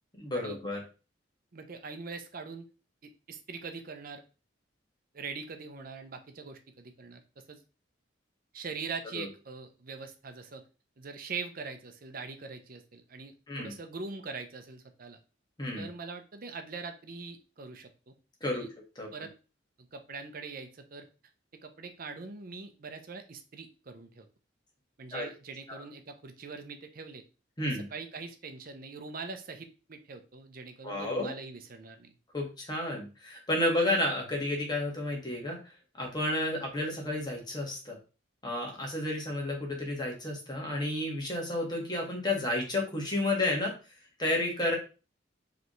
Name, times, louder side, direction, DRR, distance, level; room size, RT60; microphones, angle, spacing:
voice 1, 0.2-0.8 9.1-9.3 13.5-13.7 15.6-15.9 18.4-18.7 19.0-19.1 25.1-25.3 25.7-25.8 27.6-27.8 30.8-31.3 32.3-35.6 36.0-38.0 38.4-43.7 44.2-44.7, left 1 dB, 25° left, -1 dB, 1.5 m, -31 dB
voice 2, 1.5-2.6 3.0-4.2 5.1-7.6 8.5-10.6 11.0-15.2 15.8-18.1 18.4-18.7 19.1-19.3 19.8-21.1 21.6-24.3 25.0-27.2 27.6-32.1, right 4 dB, 50° right, 7 dB, 0.6 m, -42 dB
4.9 x 3.3 x 3.1 m, 0.33 s
head